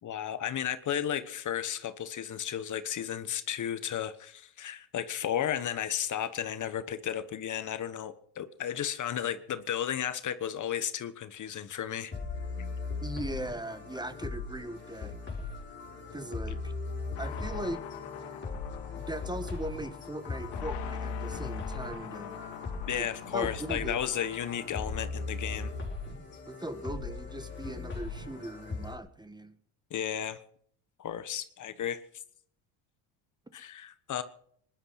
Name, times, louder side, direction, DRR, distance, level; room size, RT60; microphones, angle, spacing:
voice 1, 0.0-12.1 12.5-12.7 22.9-25.7 29.9-30.4 31.0-32.0 33.5-34.2, left 9 dB, 45° left, 1.3 m, -34 dB
sound 1, 12.1-29.0, left 3 dB, 25° left, 4.9 m, -38 dB
voice 2, 13.0-15.1 16.1-16.7 17.2-17.8 18.9-22.4 22.9-23.1 23.3-24.0 26.5-29.5, right 1 dB, 10° right, 1.5 m, -39 dB
sound 2, 17.1-24.7, left 11 dB, 85° left, 2.4 m, -45 dB
19.5 x 11.5 x 5.9 m
supercardioid pair, 95°, 42 cm